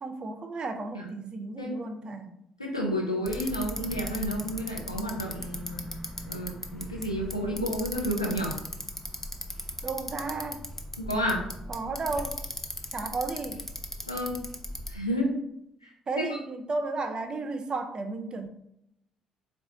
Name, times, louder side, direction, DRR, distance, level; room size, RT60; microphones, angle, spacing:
voice 1, 0.0-2.4 9.8-10.6 11.7-12.4 12.9-13.7 16.1-18.5, right 3 dB, 35° right, 7 dB, 0.4 m, -33 dB
voice 2, 2.6-5.8 6.3-8.6 11.0-11.5 14.1-14.4 14.9-15.3 15.8-15.9 16.2-16.3, equal, 85° left, -1 dB, 0.5 m, -30 dB
Bicycle, 3.3-15.0, left 1 dB, 15° left, 0.5 m, -38 dB
4.0 x 2.2 x 3.7 m, 0.79 s
figure-of-eight pair, 45°, 3 cm